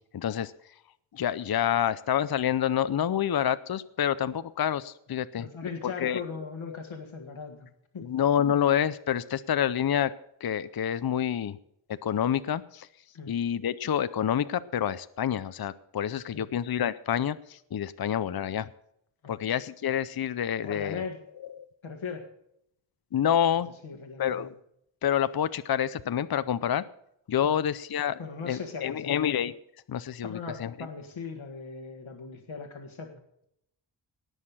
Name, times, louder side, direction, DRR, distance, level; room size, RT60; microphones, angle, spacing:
voice 1, 0.1-0.5 1.1-5.5 5.8-6.2 8.0-10.1 10.4-11.6 11.9-12.9 13.3-18.7 19.3-21.0 21.6-21.7 23.1-23.7 24.2-24.5 25.0-26.9 27.3-28.2 28.4-29.6 29.9-30.9, left 9 dB, 50° left, 15 dB, 0.6 m, -28 dB
voice 2, 5.4-7.7 7.9-8.0 13.1-13.3 16.3-16.5 19.2-19.4 20.6-21.2 21.8-22.3 23.8-24.5 27.4-27.6 28.2-29.2 30.2-33.2, left 5 dB, 75° left, 4 dB, 1.8 m, -39 dB
19.0 x 6.5 x 7.2 m, 0.76 s
wide cardioid pair, 110°, 48 cm